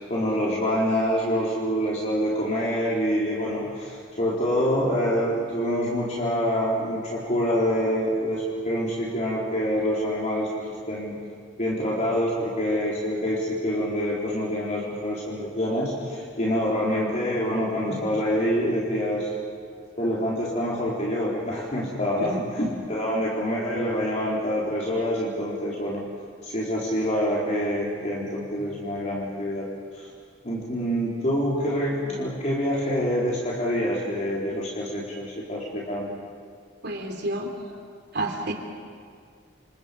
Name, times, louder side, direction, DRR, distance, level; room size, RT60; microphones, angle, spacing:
voice 1, 0.0-11.2 11.6-19.3 20.0-26.0 26.4-29.7 29.9-30.1 30.4-36.2, equal, 40° left, -6 dB, 4.1 m, -26 dB
voice 2, 36.8-37.5 38.1-38.5, right 1 dB, 60° right, 3 dB, 3.6 m, -29 dB
29.0 x 28.0 x 5.3 m, 2.1 s
head